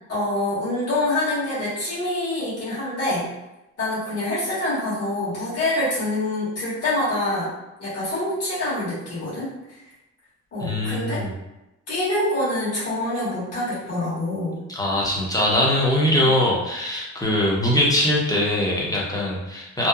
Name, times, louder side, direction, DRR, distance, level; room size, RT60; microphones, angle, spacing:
voice 1, 0.1-3.3 3.8-7.5 7.8-9.5 10.5-11.2 11.9-14.6, left 1 dB, 50° left, -9 dB, 1.4 m, -25 dB
voice 2, 10.6-11.3 14.7-19.9, left 1 dB, 10° left, -4 dB, 0.7 m, -22 dB
2.8 x 2.2 x 2.3 m, 0.97 s
cardioid pair, 90°, 30 cm